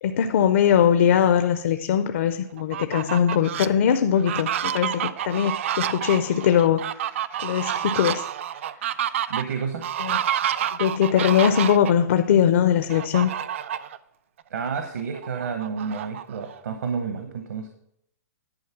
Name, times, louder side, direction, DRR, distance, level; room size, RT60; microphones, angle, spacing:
voice 1, 0.0-6.8 7.4-8.3 10.0-10.2 10.8-13.3, left 8 dB, 45° left, 9 dB, 0.5 m, -21 dB
Fowl, 2.6-3.7 4.2-11.9 12.9-14.0 14.4-14.5 14.9-16.6, right 10 dB, 45° right, 0.4 m, -29 dB
voice 2, 9.3-9.8 14.5-17.7, right 6 dB, 70° right, 5 dB, 1.1 m, -30 dB
10.5 x 4.4 x 5.9 m, 0.73 s
hypercardioid pair, 165°, 10 cm